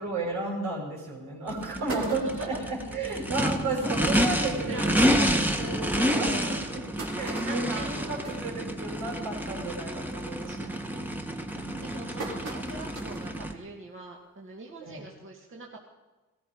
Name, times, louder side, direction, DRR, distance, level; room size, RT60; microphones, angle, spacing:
voice 1, 0.0-6.6 7.1-10.6 11.5-11.8 14.8-15.0, right 2 dB, 80° right, -1 dB, 6.0 m, -33 dB
sound 1, 0.8-0.9 1.3-1.4 1.6-2.7 3.3-3.4 3.6-3.7 4.1-4.2 5.0-5.1 5.6-5.7 6.4-9.3 9.6-10.0 10.3-10.7 11.3-13.3 13.8-13.9 15.1-15.2, right 2 dB, 65° right, 3.0 m, -41 dB
Race car auto racing / Idling / Accelerating revving vroom, 1.5-13.5, equal, 5° right, 1.5 m, -29 dB
voice 2, 1.8-2.6 4.7-5.4 6.2-6.7 7.5-8.3 10.4-11.1 11.8-15.8, right 2 dB, 45° right, -1 dB, 2.2 m, -41 dB
18.0 x 14.0 x 5.4 m, 1.2 s
cardioid pair, 90°, 30 cm